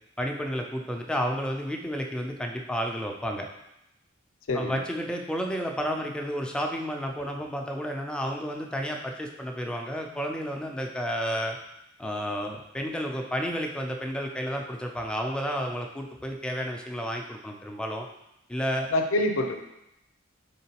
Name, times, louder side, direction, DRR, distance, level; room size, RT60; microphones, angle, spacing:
voice 1, 0.2-3.5 4.5-11.6 12.0-18.1 18.5-18.9, equal, 5° left, 2 dB, 0.3 m, -31 dB
voice 2, 4.5-4.8 18.9-19.5, left 1 dB, 75° left, 5 dB, 0.5 m, -25 dB
3.8 x 3.6 x 2.8 m, 0.85 s
head